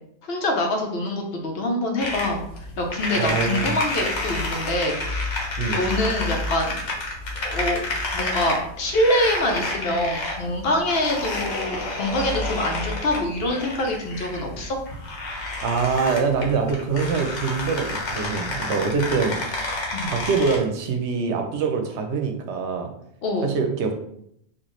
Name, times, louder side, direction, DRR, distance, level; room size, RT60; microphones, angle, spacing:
voice 1, 0.2-2.4 2.8-5.2 5.7-6.7 7.4-7.8 8.1-14.8 19.9-20.1 23.2-23.5, left 1 dB, 65° left, 2 dB, 0.9 m, -25 dB
sound 1, 2.0-20.6, left 2 dB, 90° left, 1.2 m, -29 dB
voice 2, 3.1-3.7 5.6-5.8 15.6-19.4 20.1-22.9 23.4-23.9, right 5 dB, 80° right, 4 dB, 0.9 m, -24 dB
4.4 x 2.5 x 3.1 m, 0.73 s
omnidirectional pair, 1.2 m